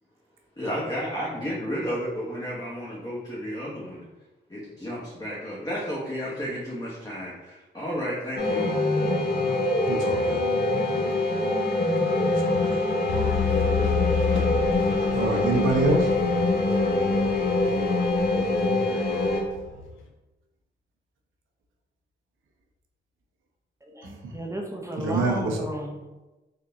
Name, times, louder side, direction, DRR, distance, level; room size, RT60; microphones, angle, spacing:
voice 1, 0.6-4.0 4.5-8.9, equal, 20° left, -7 dB, 1.1 m, -32 dB
sound 1, 8.4-19.4, left 2 dB, 50° left, 1.0 m, -24 dB
voice 2, 9.9-10.4 12.2-12.6 14.3-14.5 15.1-16.1 24.0-24.3 25.0-25.6, right 2 dB, 85° right, 2 dB, 0.7 m, -26 dB
sound 2, 13.1-20.1, left 7 dB, 90° left, 0.6 m, -31 dB
voice 3, 23.9-26.0, right 1 dB, 15° right, 1 dB, 0.6 m, -34 dB
3.7 x 2.2 x 3.8 m, 1.1 s
cardioid pair, 65°, 20 cm